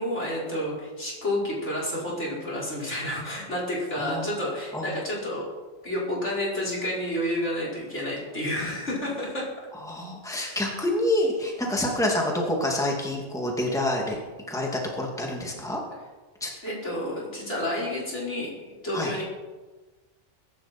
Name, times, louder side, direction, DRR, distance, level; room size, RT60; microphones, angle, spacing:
voice 1, 0.0-5.4 5.8-9.5 10.3-10.6 11.6-11.7 16.6-18.5 18.8-19.2, left 1 dB, 70° left, -5 dB, 5.3 m, -30 dB
voice 2, 9.8-14.2 14.5-15.8 16.4-16.5 18.9-19.1, left 1 dB, 5° left, -1 dB, 2.4 m, -27 dB
22.0 x 11.5 x 4.4 m, 1.3 s
omnidirectional pair, 1.3 m